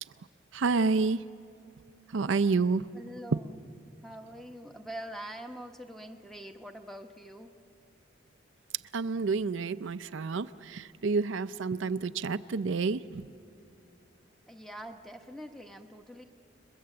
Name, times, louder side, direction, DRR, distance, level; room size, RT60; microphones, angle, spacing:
voice 1, 0.5-1.2 2.1-2.8 8.9-13.3, right 4 dB, 80° right, 12 dB, 0.5 m, -29 dB
voice 2, 2.9-3.6 4.0-7.5 14.5-16.2, right 1 dB, ahead, 5 dB, 0.9 m, -44 dB
29.0 x 21.5 x 7.7 m, 2.5 s
head